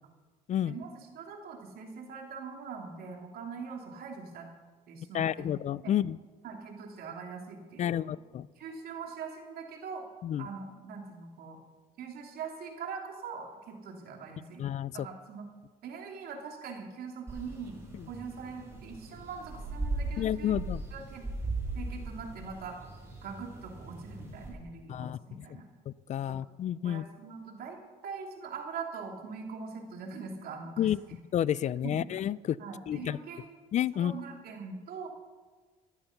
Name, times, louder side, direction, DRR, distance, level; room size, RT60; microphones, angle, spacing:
voice 1, 0.6-4.5 4.9-5.5 5.8-5.9 6.4-8.2 8.6-10.0 10.4-11.6 12.0-14.6 14.9-15.5 15.8-20.5 20.9-21.2 21.7-22.8 23.2-25.7 26.3-26.4 26.8-27.8 28.0-30.9 31.8-32.1 32.6-33.5 33.9-35.1, right 5 dB, 65° right, 2 dB, 3.0 m, -42 dB
voice 2, 5.1-6.2 7.8-8.5 10.2-10.5 14.6-15.1 20.2-20.8 24.9-25.2 25.9-27.0 30.8-31.0 31.3-32.6 32.9-33.2 33.7-34.1, left 10 dB, 45° left, 21 dB, 0.4 m, -30 dB
sound 1, 17.3-24.5, right 2 dB, 15° right, 5.5 m, -38 dB
14.0 x 11.0 x 5.8 m, 1.4 s
cardioid pair, 110°, 17 cm